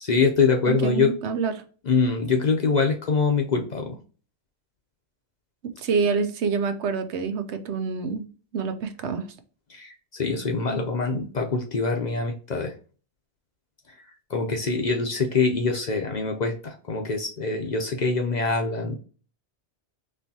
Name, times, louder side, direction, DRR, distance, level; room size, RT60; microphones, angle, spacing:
voice 1, 0.0-1.1 1.9-4.0 9.7-12.7 14.3-18.9, left 4 dB, 50° left, 0.6 m, -24 dB
voice 2, 0.7-1.5 5.6-8.3 8.5-9.2, right 5 dB, 75° right, 0.9 m, -27 dB
4.3 x 3.1 x 2.7 m
omnidirectional pair, 1.2 m